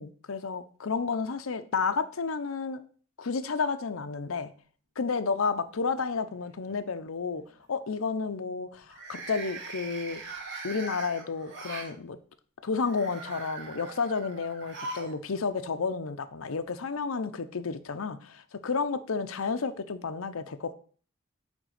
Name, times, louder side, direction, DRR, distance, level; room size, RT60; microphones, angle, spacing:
voice 1, 0.0-2.8 3.2-4.5 5.0-7.4 7.7-10.2 10.6-12.2 12.6-20.7, left 4 dB, 85° left, 0.7 m, -31 dB
sound 1, 5.3-5.9 6.3-6.7 8.8-11.9 12.7-15.2 15.5-15.6 16.7-16.8, right 3 dB, 60° right, 1.9 m, -41 dB
9.2 x 3.6 x 6.5 m
head